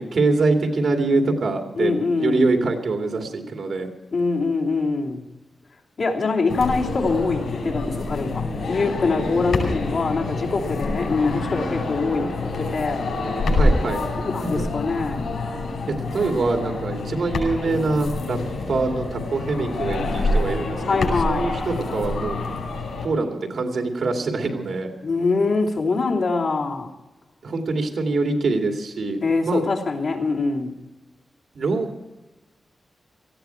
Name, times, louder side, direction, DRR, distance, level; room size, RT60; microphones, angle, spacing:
voice 1, 0.0-3.9 13.5-14.0 14.4-14.6 15.9-18.4 18.7-22.5 23.0-24.9 27.4-29.6 31.5-32.0, right 3 dB, 65° right, 3 dB, 2.4 m, -24 dB
voice 2, 1.8-2.5 4.1-5.2 6.0-13.0 14.2-15.3 20.8-21.5 25.0-26.9 29.2-30.7, left 3 dB, 60° left, -3 dB, 3.0 m, -24 dB
sound 1, 6.5-23.1, left 2 dB, 90° left, 5.8 m, -26 dB
19.0 x 15.0 x 4.5 m, 1.0 s
wide cardioid pair, 160°, 0 cm